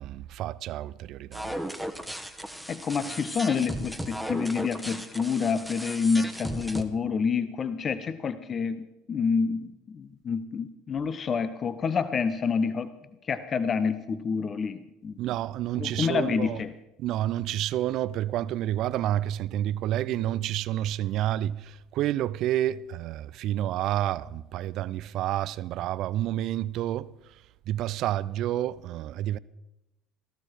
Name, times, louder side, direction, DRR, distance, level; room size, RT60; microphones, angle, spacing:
voice 1, 0.0-1.6 15.2-16.6 17.0-27.2 27.7-29.4, right 13 dB, 55° right, 0.5 m, -29 dB
sound 1, 1.3-6.8, equal, ahead, 1.2 m, -36 dB
voice 2, 2.7-12.9 13.2-15.1 15.8-16.7, left 5 dB, 35° left, 0.8 m, -28 dB
17.5 x 14.0 x 4.7 m
hypercardioid pair, 65°, 0 cm